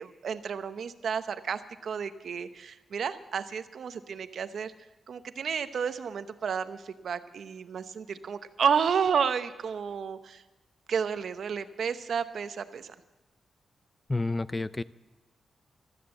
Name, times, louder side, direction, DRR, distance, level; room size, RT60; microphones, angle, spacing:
voice 1, 0.0-4.7 5.1-10.4 10.9-12.9, right 7 dB, 70° right, 11 dB, 0.8 m, -31 dB
voice 2, 14.1-14.8, left 2 dB, 20° left, 16 dB, 0.5 m, -29 dB
14.0 x 12.5 x 7.7 m, 1.1 s
cardioid pair, 75°, 0 cm